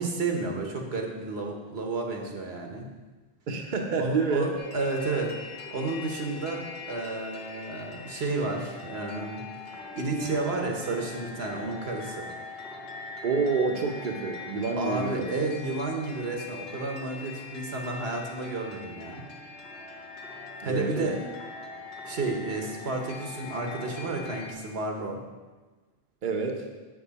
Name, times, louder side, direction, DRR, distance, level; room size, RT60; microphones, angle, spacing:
voice 1, 0.0-2.9 4.0-5.3 5.7-9.4 9.9-12.3 14.8-19.3 20.6-21.2 22.0-25.2, right 3 dB, 80° right, 2 dB, 1.3 m, -31 dB
voice 2, 3.5-4.5 13.2-15.3 20.6-21.2 26.2-26.6, right 4 dB, 55° right, 2 dB, 0.8 m, -28 dB
sound 1, 4.6-24.5, left 4 dB, 60° left, 1.4 m, -42 dB
7.4 x 6.4 x 4.0 m, 1.3 s
omnidirectional pair, 1.0 m